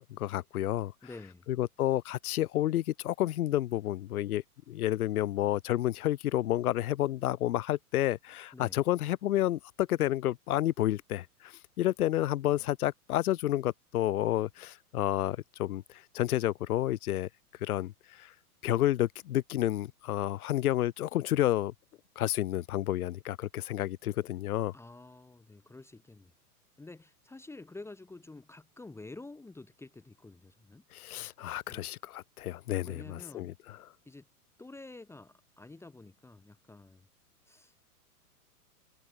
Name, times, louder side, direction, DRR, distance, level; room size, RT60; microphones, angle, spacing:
voice 1, 0.0-0.9 1.5-17.3 17.6-18.3 18.6-21.7 22.2-24.7 30.9-33.9, left 13 dB, 70° left, 0.6 m, -30 dB
voice 2, 1.0-1.5 8.5-8.8 24.7-26.3 26.8-30.8 31.7-31.9 32.8-33.5 34.0-34.2 34.6-37.1 37.4-37.9, left 2 dB, 5° left, 1.6 m, -49 dB
figure-of-eight pair, 110°, 46 cm